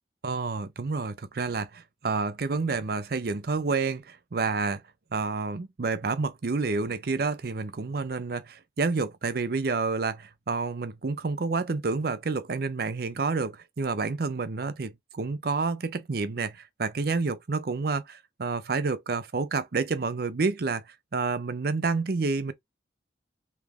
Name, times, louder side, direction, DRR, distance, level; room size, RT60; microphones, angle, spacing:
voice 1, 0.2-4.8 5.1-20.8 21.1-22.5, right 4 dB, 60° right, 0.6 m, -29 dB
3.5 x 3.1 x 3.5 m
head